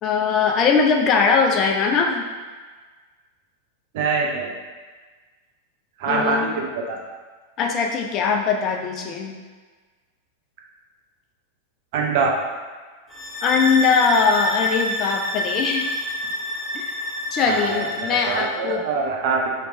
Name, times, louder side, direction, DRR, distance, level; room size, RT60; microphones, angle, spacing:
voice 1, 0.0-2.3 6.1-6.5 7.6-9.3 13.4-15.9 16.7-16.8 17.3-18.8, left 5 dB, 35° left, 2 dB, 0.4 m, -21 dB
voice 2, 3.9-4.5 6.0-7.0 11.9-12.3 17.5-17.9 18.3-19.5, right 4 dB, 50° right, -1 dB, 0.7 m, -23 dB
sound 1, 13.1-18.5, left 1 dB, 15° left, 1.0 m, -27 dB
3.2 x 3.0 x 4.0 m, 1.4 s
figure-of-eight pair, 90°, 0 cm